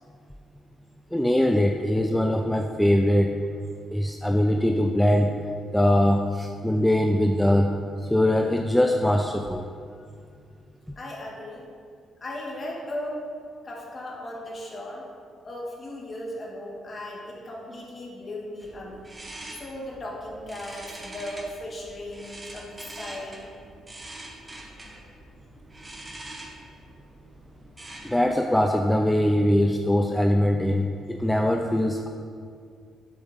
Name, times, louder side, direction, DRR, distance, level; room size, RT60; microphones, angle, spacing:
voice 1, 1.1-3.4 3.9-5.3 5.7-7.7 8.0-9.7 28.0-32.1, left 1 dB, 5° left, 3 dB, 0.4 m, -22 dB
voice 2, 11.0-11.7 12.2-13.3 13.6-15.0 15.4-19.1 19.5-23.5, left 1 dB, 35° left, -3 dB, 1.9 m, -37 dB
sound 1, 18.6-28.3, right 1 dB, 20° right, 1.3 m, -44 dB
7.6 x 7.0 x 3.7 m, 2.3 s
cardioid pair, 90°, 0 cm